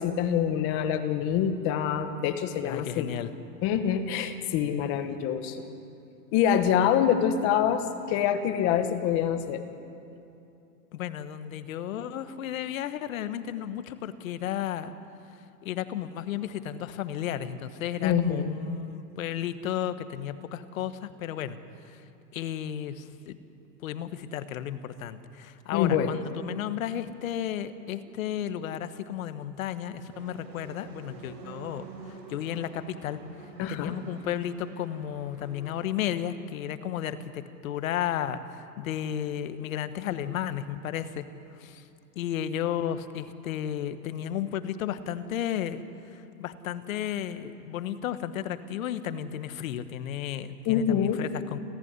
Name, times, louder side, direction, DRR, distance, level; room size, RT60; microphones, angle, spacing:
voice 1, 0.0-3.1 3.6-5.6 6.3-9.6 18.0-18.5 25.7-26.1 33.6-34.0 50.7-51.2, left 9 dB, 25° left, 9 dB, 1.3 m, -25 dB
voice 2, 2.6-3.3 10.9-14.9 15.6-21.6 21.8-22.0 22.3-23.4 23.8-33.2 33.7-41.8 42.1-51.6, left 10 dB, 55° left, 11 dB, 1.4 m, -33 dB
sound 1, 30.1-35.8, right 4 dB, 80° right, 7.2 m, -47 dB
29.5 x 14.5 x 9.7 m, 2.7 s
supercardioid pair, 160°, 49 cm